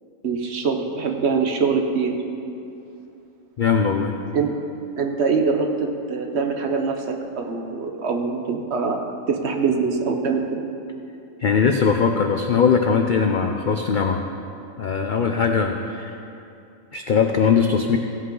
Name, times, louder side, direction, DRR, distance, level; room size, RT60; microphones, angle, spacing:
voice 1, 0.2-2.1 4.3-4.5 5.0-10.6, right 5 dB, 55° right, 3 dB, 1.0 m, -23 dB
voice 2, 3.6-4.1 11.4-14.2 14.8-16.1 16.9-18.0, left 6 dB, 70° left, 4 dB, 0.4 m, -20 dB
16.5 x 8.4 x 3.9 m, 2.7 s
omnidirectional pair, 1.5 m